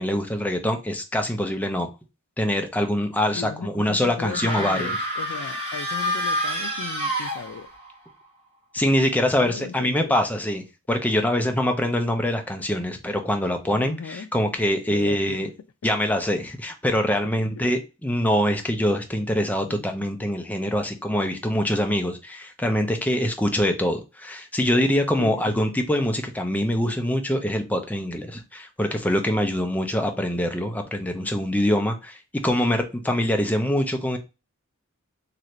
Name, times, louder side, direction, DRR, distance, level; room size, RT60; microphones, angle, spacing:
voice 1, 0.0-1.9 2.4-4.9 8.7-15.5 15.8-34.2, equal, 5° left, 0.5 m, -24 dB
voice 2, 3.3-7.7 9.4-10.1 13.7-14.3 14.9-15.4 19.7-19.8 25.2-25.6, left 6 dB, 90° left, 0.4 m, -36 dB
sound 1, 4.2-7.9, equal, 30° right, 1.2 m, -28 dB
3.2 x 2.5 x 2.9 m
head